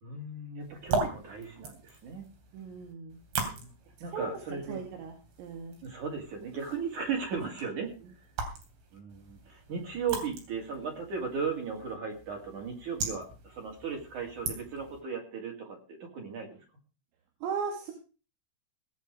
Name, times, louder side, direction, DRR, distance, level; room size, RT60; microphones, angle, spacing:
voice 1, 0.0-2.3 3.5-3.7 4.0-4.8 5.8-7.9 8.9-16.6, right 5 dB, 45° right, 1 dB, 3.4 m, -36 dB
sound 1, 0.6-15.0, right 4 dB, 60° right, 5.0 m, -40 dB
voice 2, 2.5-3.2 4.1-5.8 17.4-17.9, right 6 dB, 80° right, 2 dB, 4.7 m, -37 dB
19.0 x 8.2 x 4.9 m, 0.34 s
omnidirectional pair, 6.0 m